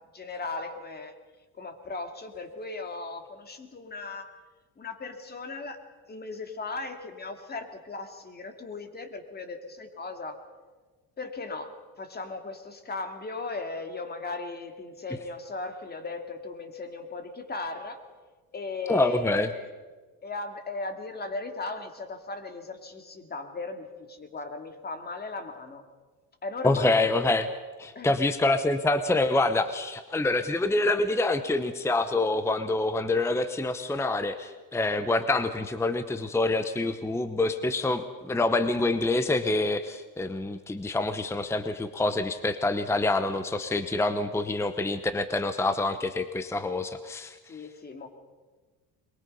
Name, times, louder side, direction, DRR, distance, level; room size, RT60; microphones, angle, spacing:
voice 1, 0.1-1.1 1.6-4.3 4.8-5.8 6.1-10.4 11.2-18.0 18.5-19.3 19.5-19.6 20.2-25.8 26.4-27.0 27.9-28.2 30.1-30.2 47.5-48.1, left 3 dB, 25° left, 6 dB, 2.4 m, -37 dB
voice 2, 18.9-19.5 26.6-27.5 27.8-47.4, left 2 dB, 5° left, 10 dB, 0.8 m, -26 dB
23.0 x 22.0 x 5.5 m, 1.3 s
cardioid pair, 135°, 38 cm